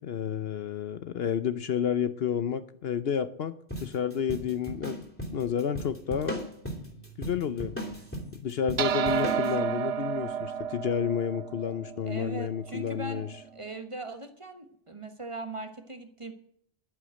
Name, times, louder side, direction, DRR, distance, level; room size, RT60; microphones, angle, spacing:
voice 1, 0.0-3.5 3.8-6.4 7.2-7.7 8.3-13.3, left 8 dB, 60° left, 12 dB, 0.9 m, -30 dB
sound 1, 3.7-9.5, equal, 10° left, 2.8 m, -37 dB
sound 2, 8.8-13.4, right 8 dB, 80° right, 1.1 m, -31 dB
voice 2, 12.1-13.3 13.5-16.3, right 2 dB, 25° right, 7 dB, 1.2 m, -39 dB
11.5 x 9.3 x 7.7 m, 0.68 s
omnidirectional pair, 1.2 m